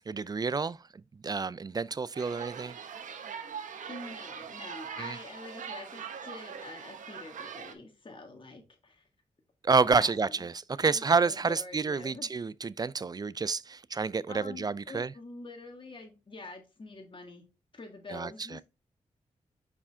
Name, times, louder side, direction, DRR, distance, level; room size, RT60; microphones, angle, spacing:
voice 1, 0.1-0.8 1.2-2.8 5.0-5.2 9.6-10.5 10.8-15.1 18.1-18.6, right 4 dB, 30° right, 0.3 m, -29 dB
sound 1, 2.1-7.7, right 7 dB, 85° right, 0.8 m, -42 dB
voice 2, 3.9-9.0 10.0-10.4 10.8-12.3 14.3-17.4 17.7-18.6, left 3 dB, 40° left, 1.8 m, -46 dB
5.4 x 4.9 x 3.6 m
cardioid pair, 50°, 13 cm